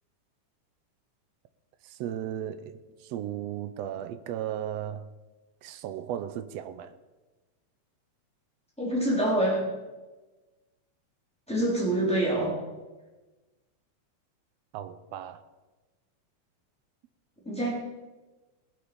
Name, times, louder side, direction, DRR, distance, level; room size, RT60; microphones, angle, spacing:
voice 1, 1.8-5.1 5.6-7.0 14.7-15.4, right 10 dB, 80° right, 1.5 m, -36 dB
voice 2, 8.8-9.6 11.5-12.6 17.4-17.7, right 1 dB, ahead, 4.2 m, -26 dB
19.5 x 8.3 x 5.5 m
omnidirectional pair, 3.6 m